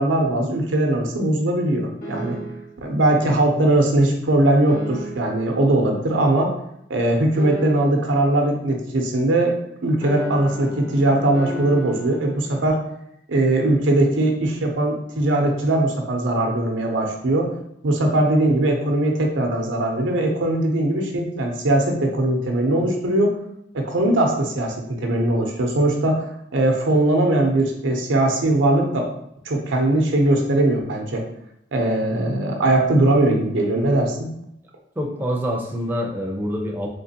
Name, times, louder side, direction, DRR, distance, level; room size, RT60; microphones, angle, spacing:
voice 1, 0.0-2.4 2.8-6.5 6.9-9.6 9.8-12.8 13.3-17.5 17.8-23.4 23.7-29.1 29.4-31.2 31.7-34.3, right 1 dB, 90° right, 2 dB, 0.7 m, -20 dB
sound 1, 2.0-2.8 4.7-5.5 7.3-8.2 10.0-12.7, right 1 dB, 50° left, 1.5 m, -34 dB
voice 2, 35.0-36.9, equal, 10° right, -1 dB, 0.5 m, -26 dB
3.7 x 2.9 x 2.8 m, 0.76 s
head